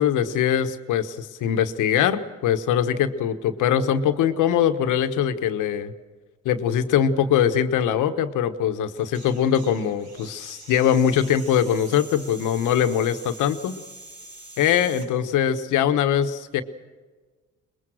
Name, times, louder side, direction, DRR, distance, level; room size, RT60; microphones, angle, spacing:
voice 1, 0.0-5.9 6.4-13.8 14.6-16.6, left 9 dB, 85° left, 10 dB, 1.3 m, -22 dB
sound 1, 9.0-15.1, right 2 dB, 65° right, 6.5 m, -44 dB
23.5 x 21.5 x 6.4 m, 1.4 s
cardioid pair, 90°, 30 cm